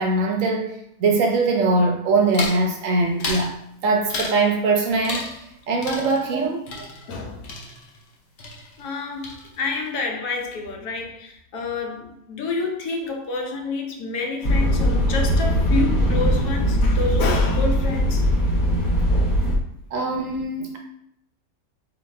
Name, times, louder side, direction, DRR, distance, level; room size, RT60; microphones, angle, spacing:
voice 1, 0.0-3.5 3.8-5.3 5.7-6.7 19.9-20.8, right 3 dB, 65° right, 0.9 m, -22 dB
sound 1, 2.3-2.7 3.2-3.5 4.1-4.5 5.0-5.5 5.8-8.1 8.4-9.0 9.2-9.8, left 3 dB, 60° left, 1.1 m, -33 dB
voice 2, 7.1-7.5 8.8-18.2 19.1-19.4, left 3 dB, 80° left, 1.3 m, -28 dB
sound 2, 14.4-19.6, equal, 40° left, 0.7 m, -20 dB
4.0 x 3.1 x 3.2 m
omnidirectional pair, 1.6 m